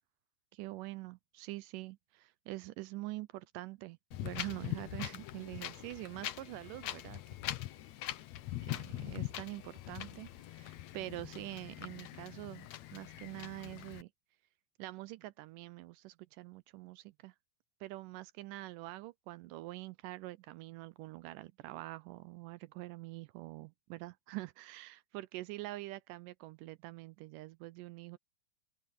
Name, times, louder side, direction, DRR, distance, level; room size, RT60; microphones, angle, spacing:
voice 1, 0.5-7.2 8.6-14.1 14.8-17.4 17.8-28.2, right 18 dB, 80° right, 2.0 m, -45 dB
Wind, 4.1-14.0, left 14 dB, 75° left, 1.7 m, -43 dB
open air
omnidirectional pair, 4.2 m